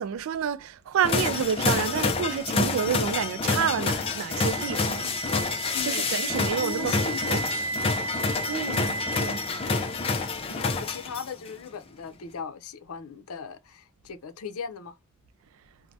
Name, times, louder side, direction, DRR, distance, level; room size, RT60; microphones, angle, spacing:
voice 1, 0.0-5.2 5.8-7.4 8.5-9.4, right 8 dB, 70° right, 0.3 m, -29 dB
sound 1, 1.0-11.5, left 4 dB, 25° left, 0.4 m, -28 dB
Wind instrument woodwind instrument, 4.2-10.2, right 4 dB, 10° right, 0.9 m, -35 dB
voice 2, 5.7-7.4 8.5-8.9 9.7-9.9 10.5-15.0, left 6 dB, 90° left, 0.5 m, -38 dB
2.6 x 2.1 x 3.2 m
head